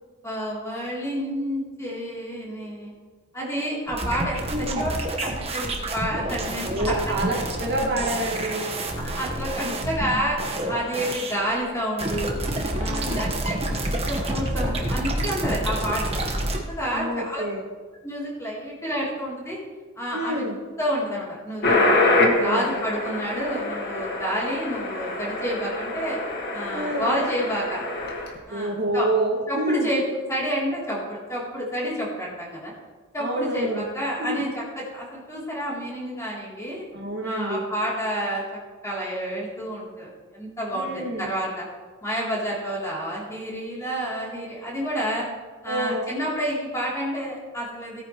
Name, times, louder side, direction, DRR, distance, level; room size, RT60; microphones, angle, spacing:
voice 1, 0.2-2.9 3.3-4.9 5.2-7.0 9.0-10.4 10.7-12.4 12.7-16.2 16.7-17.4 18.0-19.6 20.0-20.5 20.8-22.0 22.3-26.2 26.5-27.8 28.5-29.1 29.5-30.0 30.3-32.7 33.1-36.9 37.2-38.4 38.8-41.6 42.0-45.2 45.6-48.0, equal, 15° left, -6 dB, 3.5 m, -29 dB
sound 1, 3.9-11.5 12.0-16.6, right 1 dB, 25° right, 1.4 m, -28 dB
voice 2, 4.5-4.9 6.6-8.7 9.6-9.8 12.8-13.3 16.9-17.6 20.1-20.6 22.2-22.7 26.7-27.2 28.5-29.9 33.2-33.9 34.2-34.4 36.9-37.7 40.7-41.3 45.6-46.1, right 1 dB, 50° right, -2 dB, 2.1 m, -28 dB
sound 2, 21.6-28.4, left 2 dB, 45° left, 1.9 m, -25 dB
17.5 x 9.6 x 3.2 m, 1.4 s
head